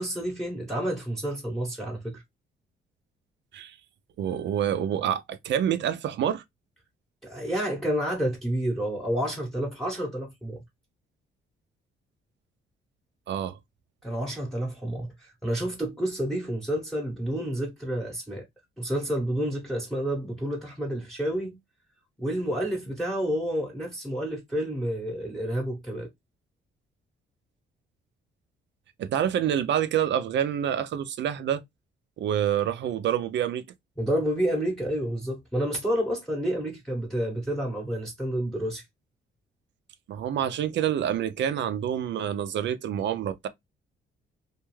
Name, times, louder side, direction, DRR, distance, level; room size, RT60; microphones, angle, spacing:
voice 1, 0.0-2.2 7.2-10.6 14.0-18.4 18.8-21.6 22.2-26.1 34.0-38.8, right 1 dB, ahead, 0.9 m, -29 dB
voice 2, 4.2-6.4 13.3-13.6 29.0-31.6 32.2-33.6 40.1-43.5, right 9 dB, 65° right, 0.5 m, -27 dB
2.5 x 2.3 x 3.0 m
cardioid pair, 90°, 20 cm